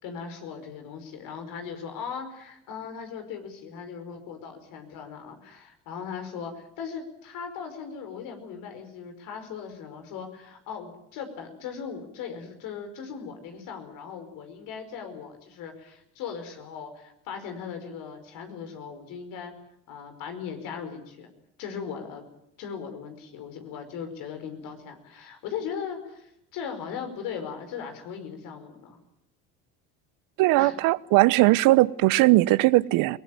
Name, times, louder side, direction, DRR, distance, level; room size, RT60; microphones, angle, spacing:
voice 1, 0.0-19.5 19.9-21.3 21.6-22.2 22.6-29.0 30.6-30.7, left 6 dB, 70° left, 5.1 m, -38 dB
voice 2, 30.4-33.2, right 19 dB, 70° right, 1.0 m, -19 dB
21.5 x 19.5 x 9.2 m
supercardioid pair, 75°, 34 cm